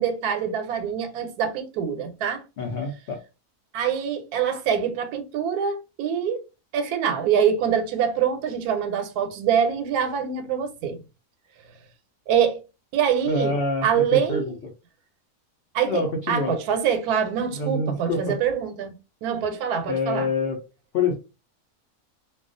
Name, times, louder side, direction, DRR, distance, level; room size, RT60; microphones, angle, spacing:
voice 1, 0.0-2.4 3.7-6.4 6.7-11.0 12.3-12.6 12.9-13.5 13.8-14.5 15.7-16.0 16.3-18.9 19.2-20.3, right 8 dB, 90° right, 1.1 m, -24 dB
voice 2, 2.6-3.2 13.3-14.5 15.8-16.6 17.5-18.4 19.8-20.6 20.9-21.1, left 3 dB, 80° left, 0.5 m, -26 dB
2.3 x 2.3 x 2.5 m
omnidirectional pair, 1.6 m